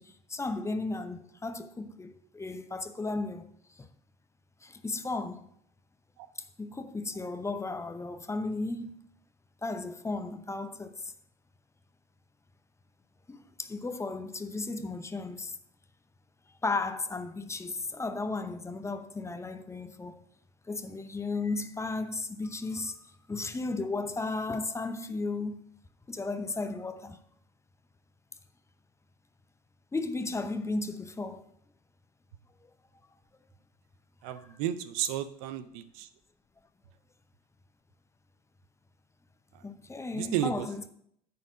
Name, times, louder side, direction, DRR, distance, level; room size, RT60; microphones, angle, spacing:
voice 1, 0.0-3.5 3.8-3.9 4.6-5.5 6.6-9.0 9.6-11.1 13.3-15.6 16.6-20.2 20.7-25.6 26.1-27.2 29.9-31.4 39.6-40.9, left 3 dB, 15° left, 0.7 m, -35 dB
voice 2, 34.2-36.1 39.5-39.6 40.1-40.7, right 11 dB, 60° right, 0.6 m, -33 dB
9.8 x 4.4 x 6.2 m
figure-of-eight pair, 70°, 20 cm